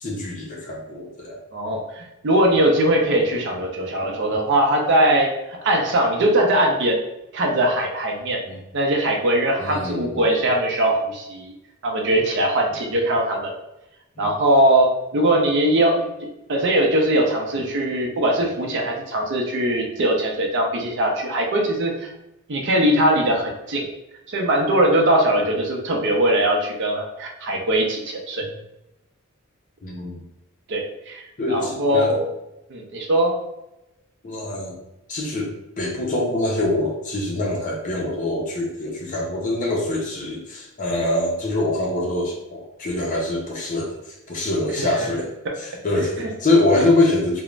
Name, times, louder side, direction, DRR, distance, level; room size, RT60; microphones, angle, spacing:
voice 1, 0.0-1.4 8.5-8.6 9.6-10.2 14.2-14.3 28.4-28.5 29.8-30.2 31.4-32.1 34.2-34.8 35.1-35.5 35.8-45.3 45.6-47.4, left 2 dB, 35° left, -2 dB, 0.5 m, -24 dB
voice 2, 1.5-7.0 7.3-8.4 8.7-11.5 11.8-13.5 14.2-16.1 16.5-22.1 22.5-23.9 24.3-28.5 30.7-32.3 32.7-33.4 45.4-45.5, right 1 dB, 55° right, 1 dB, 0.5 m, -21 dB
2.4 x 2.0 x 3.1 m, 0.90 s
head